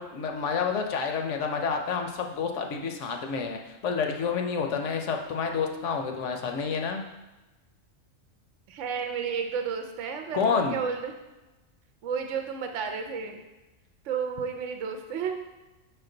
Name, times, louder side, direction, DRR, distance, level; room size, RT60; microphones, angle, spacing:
voice 1, 0.0-7.0 10.3-10.8, left 5 dB, 70° left, 3 dB, 0.9 m, -29 dB
voice 2, 8.7-11.2 12.0-13.4 14.1-15.4, right 6 dB, 70° right, 5 dB, 0.9 m, -32 dB
6.0 x 4.4 x 3.8 m, 1.1 s
omnidirectional pair, 1.4 m